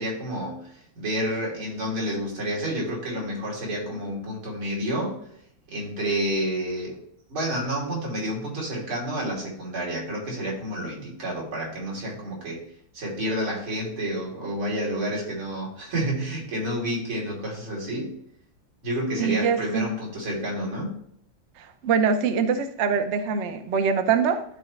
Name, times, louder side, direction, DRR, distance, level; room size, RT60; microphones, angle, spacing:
voice 1, 0.0-5.2 5.7-7.0 7.3-18.1 18.8-21.0, equal, 90° right, -4 dB, 3.9 m, -29 dB
voice 2, 19.2-19.9 21.6-24.4, right 6 dB, 70° right, 7 dB, 0.6 m, -24 dB
12.0 x 4.1 x 3.3 m, 0.69 s
omnidirectional pair, 2.3 m